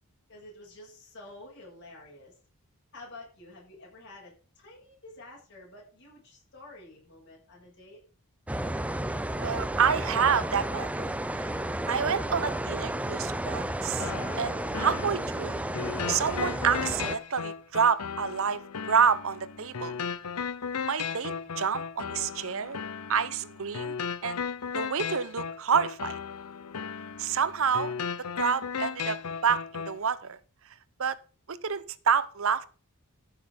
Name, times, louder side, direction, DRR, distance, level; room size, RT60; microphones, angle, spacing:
voice 1, 0.3-2.3 2.9-8.0, left 2 dB, 55° left, 7.5 m, -49 dB
sound 1, 8.5-17.2, right 1 dB, 5° right, 0.5 m, -32 dB
voice 2, 9.4-11.6 11.9-15.6 16.1-18.6 18.9-19.9 20.9-22.8 23.1-24.0 24.2-24.4 24.7-26.2 27.2-28.0 28.4-30.4 31.0-31.2 31.5-32.6, right 7 dB, 65° right, 0.8 m, -28 dB
sound 2, 14.0-30.0, left 6 dB, 90° left, 0.8 m, -36 dB
14.0 x 6.6 x 5.2 m
head